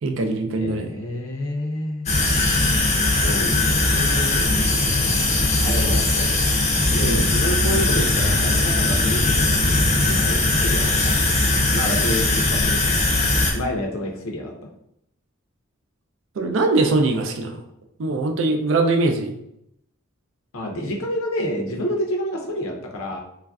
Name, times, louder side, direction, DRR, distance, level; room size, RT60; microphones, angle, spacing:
voice 1, 0.0-0.9 7.0-7.2 16.4-17.6 18.0-19.3, right 2 dB, 65° right, 5 dB, 0.4 m, -22 dB
voice 2, 0.6-2.1 3.1-4.6 5.6-6.3 6.9-10.9 11.2-12.8 13.5-14.5 20.5-23.2, equal, 85° left, 0 dB, 0.6 m, -29 dB
sound 1, 2.1-13.5, left 2 dB, 30° left, 0.5 m, -20 dB
3.1 x 2.4 x 2.3 m, 0.78 s
head